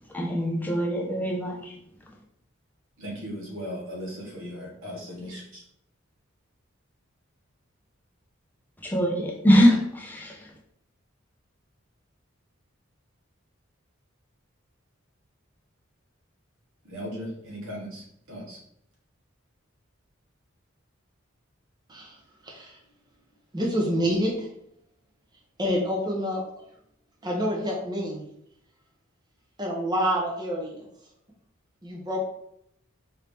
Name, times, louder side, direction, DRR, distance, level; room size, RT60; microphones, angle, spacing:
voice 1, 0.1-1.7 8.8-10.5, equal, 10° left, -1 dB, 0.5 m, -23 dB
voice 2, 3.0-5.6 16.8-18.6, equal, 75° right, -3 dB, 1.5 m, -37 dB
voice 3, 23.5-24.5 25.6-26.4 27.2-28.2 29.6-30.9 31.8-32.2, equal, 20° right, -2 dB, 0.7 m, -27 dB
4.2 x 2.7 x 3.4 m, 0.72 s
head